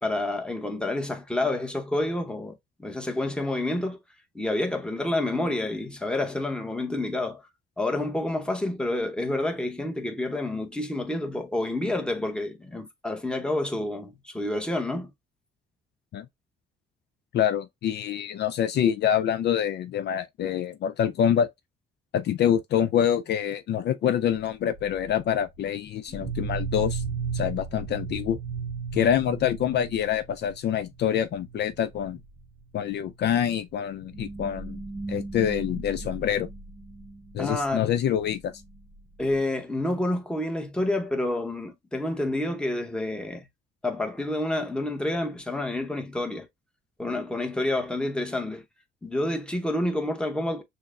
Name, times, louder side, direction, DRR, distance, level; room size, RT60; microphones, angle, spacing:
voice 1, 0.0-2.5 2.8-4.0 4.3-7.4 7.8-15.1 37.4-37.9 39.2-43.5 43.8-46.5 47.0-48.6 49.0-50.6, left 1 dB, 5° left, 0.9 m, -28 dB
voice 2, 17.3-21.5 22.1-27.0 27.3-28.4 28.9-32.2 32.7-34.8 35.1-36.5 37.3-38.5, left 9 dB, 60° left, 0.4 m, -26 dB
sound 1, 24.8-25.2 26.1-30.6 30.9-31.1 31.4-31.7 31.9-32.2 32.9-33.0 34.0-37.2, right 5 dB, 25° right, 0.8 m, -35 dB
6.4 x 2.1 x 2.3 m
cardioid pair, 90°, 20 cm